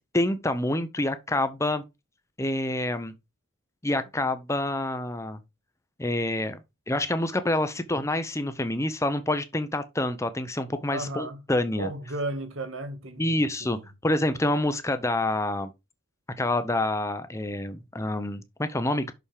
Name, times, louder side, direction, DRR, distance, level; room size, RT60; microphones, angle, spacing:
voice 1, 0.1-1.8 2.4-3.1 3.8-5.4 6.0-6.6 6.9-11.9 13.2-15.7 16.4-19.1, left 1 dB, 15° left, 0.7 m, -27 dB
voice 2, 10.9-11.4 11.8-13.9, right 2 dB, 70° right, 1.6 m, -34 dB
6.3 x 5.5 x 4.9 m
head